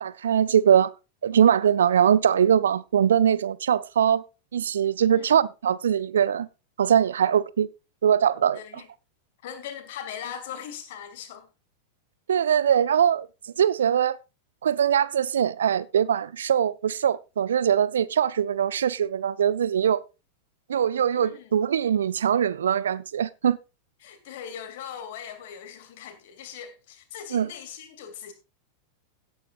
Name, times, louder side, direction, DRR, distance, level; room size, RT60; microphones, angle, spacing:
voice 1, 0.0-0.9 1.2-4.2 4.5-6.5 6.8-7.7 8.0-8.6 12.3-13.3 13.6-14.2 14.6-20.0 20.7-23.6 27.3-27.5, right 8 dB, 65° right, 0.6 m, -22 dB
voice 2, 8.5-8.9 9.4-11.5 21.1-21.6 24.0-28.3, left 8 dB, 55° left, 2.6 m, -40 dB
16.5 x 9.3 x 2.5 m
figure-of-eight pair, 90°, 0 cm